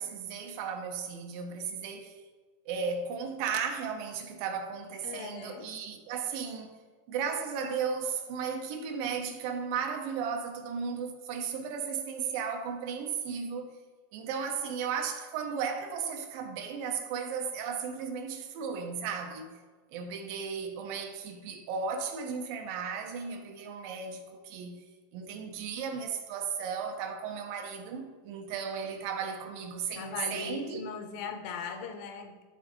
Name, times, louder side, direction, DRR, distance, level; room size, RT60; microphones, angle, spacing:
voice 1, 0.0-2.2 2.7-6.8 7.1-13.7 14.1-19.5 19.9-24.8 25.1-30.9, right 6 dB, 80° right, 2.4 m, -35 dB
voice 2, 5.0-5.7 30.0-32.4, left 6 dB, 85° left, 2.4 m, -39 dB
12.0 x 4.2 x 2.9 m
omnidirectional pair, 4.0 m